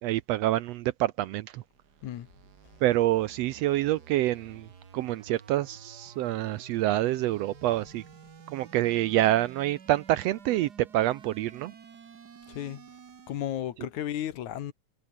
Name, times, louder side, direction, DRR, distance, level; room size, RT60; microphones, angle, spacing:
voice 1, 0.0-1.6 2.8-8.0 8.5-11.7, right 15 dB, 75° right, 1.6 m, -27 dB
sound 1, 1.4-13.6, right 6 dB, 40° right, 1.9 m, -52 dB
voice 2, 12.5-12.8 13.3-14.7, left 11 dB, 80° left, 2.8 m, -34 dB
omnidirectional pair, 3.4 m